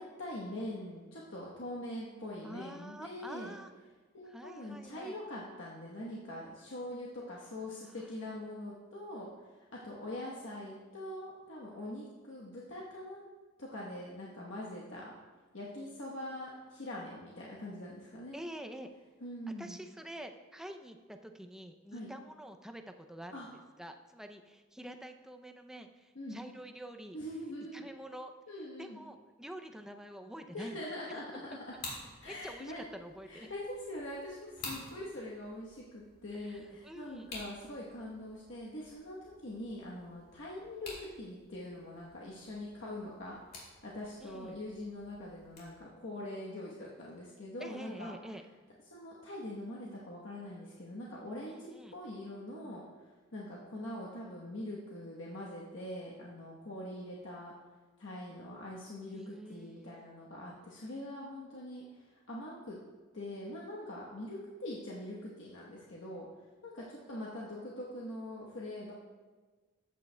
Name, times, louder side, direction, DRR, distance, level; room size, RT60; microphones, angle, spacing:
voice 1, 0.0-3.5 4.1-13.2 13.6-15.1 15.5-18.4 19.2-19.8 21.9-22.1 23.3-23.5 26.1-26.4 27.1-27.9 28.5-29.0 30.5-31.7 32.2-32.9 33.3-48.1 48.9-57.5 58.0-62.8 63.1-66.3 66.6-68.9, left 1 dB, 70° left, -4 dB, 1.1 m, -43 dB
voice 2, 2.4-3.7 4.3-5.2 18.3-18.9 19.6-23.4 23.8-27.2 27.7-28.3 28.8-30.8 32.3-33.5 36.3-37.3 44.2-44.6 47.6-48.4 51.5-51.9 59.1-60.0, right 1 dB, 5° right, 5 dB, 0.4 m, -47 dB
sound 1, 31.7-45.8, left 2 dB, 50° left, 2.8 m, -51 dB
14.0 x 8.4 x 2.2 m, 1.3 s
head